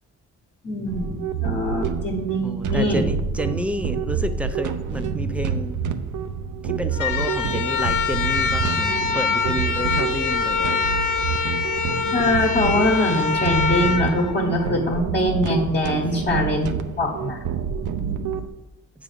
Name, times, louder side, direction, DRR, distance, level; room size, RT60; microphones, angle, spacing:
voice 1, 0.6-3.0 12.1-16.7 17.0-17.4, left 1 dB, 35° left, -1 dB, 1.1 m, -23 dB
sound 1, 0.9-18.5, right 6 dB, 80° right, 0.7 m, -28 dB
voice 2, 2.4-5.8 6.6-10.9 16.0-16.2, right 1 dB, 5° right, 9 dB, 0.5 m, -30 dB
sound 2, 6.9-15.1, left 5 dB, 75° left, 0.8 m, -24 dB
8.1 x 3.7 x 6.7 m, 1.0 s
cardioid pair, 105°, 31 cm